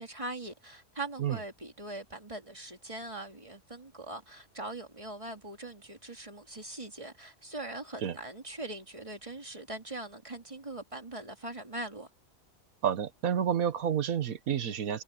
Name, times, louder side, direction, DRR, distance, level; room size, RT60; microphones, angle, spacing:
voice 1, 0.0-12.1, right 2 dB, 25° right, 2.8 m, -41 dB
voice 2, 12.8-15.0, right 8 dB, 80° right, 1.5 m, -29 dB
omnidirectional pair, 1.4 m